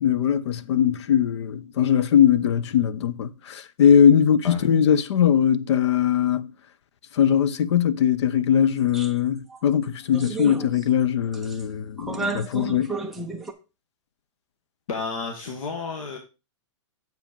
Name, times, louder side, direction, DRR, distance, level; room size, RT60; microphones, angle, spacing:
voice 1, 0.0-6.5 7.1-13.0, left 8 dB, 55° left, 0.7 m, -20 dB
sound 1, 8.9-9.1 9.5-9.6 10.1-11.0 11.3-11.6 12.0-13.5, right 4 dB, ahead, 0.4 m, -32 dB
voice 2, 14.9-16.2, left 4 dB, 90° left, 1.8 m, -31 dB
7.7 x 5.1 x 5.1 m
hypercardioid pair, 170°, 17 cm